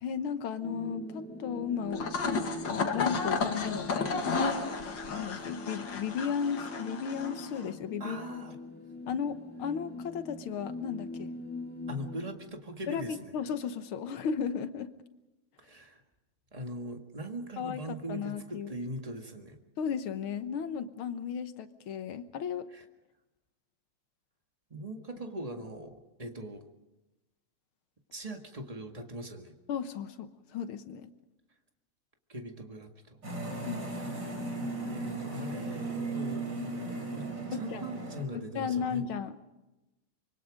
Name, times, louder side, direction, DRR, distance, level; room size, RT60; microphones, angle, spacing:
voice 1, 0.0-2.2 2.5-4.3 5.1-8.3 9.1-11.3 12.9-14.9 17.6-18.7 19.8-22.7 29.7-31.1 33.7-33.8 37.5-37.8 38.6-39.4, left 7 dB, 75° left, 10 dB, 1.9 m, -35 dB
sound 1, 0.6-12.4, left 1 dB, 5° left, 2.2 m, -43 dB
sound 2, 1.9-7.7, left 4 dB, 60° left, 2.4 m, -33 dB
voice 2, 8.0-8.6 11.9-13.3 15.6-16.0 16.5-19.6 22.7-22.8 24.7-26.6 28.1-29.5 32.3-33.2 34.9-36.5 37.1-39.0, right 1 dB, 20° right, 4 dB, 1.7 m, -41 dB
sound 3, 33.2-38.2, right 2 dB, 55° right, 4.8 m, -36 dB
25.5 x 23.5 x 5.2 m, 1.0 s
omnidirectional pair, 2.4 m